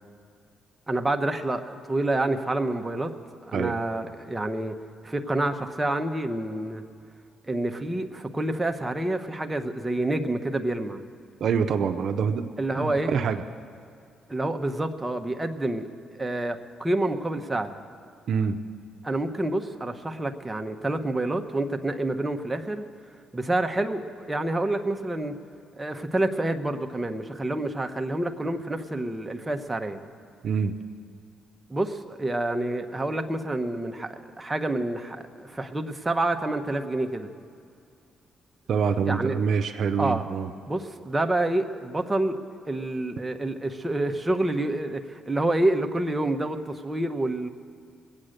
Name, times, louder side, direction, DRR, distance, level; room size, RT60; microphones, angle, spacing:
voice 1, 0.9-3.1 3.4-4.8 5.0-6.8 7.5-11.0 12.6-13.1 14.3-15.9 16.1-17.8 19.0-22.8 23.3-25.3 25.7-30.0 31.7-37.3 39.0-39.4 40.0-40.2 40.7-42.4 42.6-47.5, right 2 dB, 15° right, 5 dB, 0.9 m, -28 dB
voice 2, 11.4-12.5 12.8-13.4 18.3-18.6 30.4-30.7 38.7-40.5, right 6 dB, 65° right, 7 dB, 0.6 m, -25 dB
21.5 x 8.8 x 6.6 m, 2.4 s
cardioid pair, 90°, 0 cm